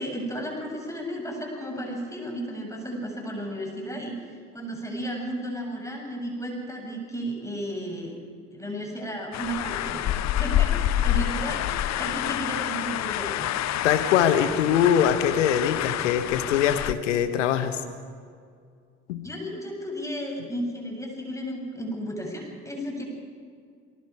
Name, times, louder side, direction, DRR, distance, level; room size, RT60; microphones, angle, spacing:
voice 1, 0.0-8.2 8.5-13.5 19.2-23.0, equal, 10° left, 0 dB, 7.2 m, -34 dB
sound 1, 9.3-16.9, left 12 dB, 45° left, 0.8 m, -27 dB
voice 2, 13.8-17.8 19.1-19.3, left 9 dB, 75° left, 9 dB, 1.3 m, -22 dB
28.5 x 19.5 x 4.8 m, 2.2 s
figure-of-eight pair, 50°, 37 cm